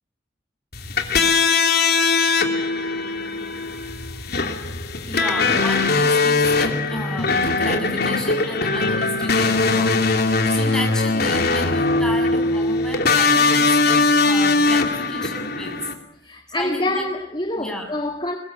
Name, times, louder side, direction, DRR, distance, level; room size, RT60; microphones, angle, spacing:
sound 1, 0.7-15.9, left 3 dB, 55° left, 3.0 m, -20 dB
voice 1, 5.1-15.9 16.5-17.1 17.6-17.9, left 1 dB, 5° left, 7.2 m, -32 dB
voice 2, 10.2-10.5 16.2-18.4, left 1 dB, 25° left, 2.0 m, -27 dB
23.5 x 21.5 x 9.2 m
head